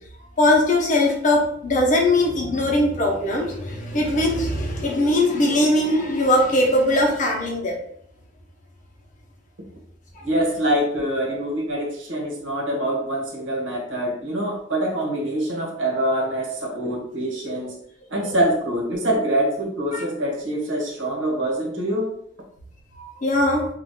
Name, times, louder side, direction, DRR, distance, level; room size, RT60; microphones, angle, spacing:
voice 1, 0.4-7.7 18.2-18.3 19.9-20.0 23.0-23.7, left 1 dB, 45° left, -1 dB, 0.8 m, -20 dB
voice 2, 10.2-17.7 18.1-22.1, right 1 dB, 90° right, 0 dB, 1.0 m, -25 dB
2.6 x 2.4 x 3.6 m, 0.66 s
head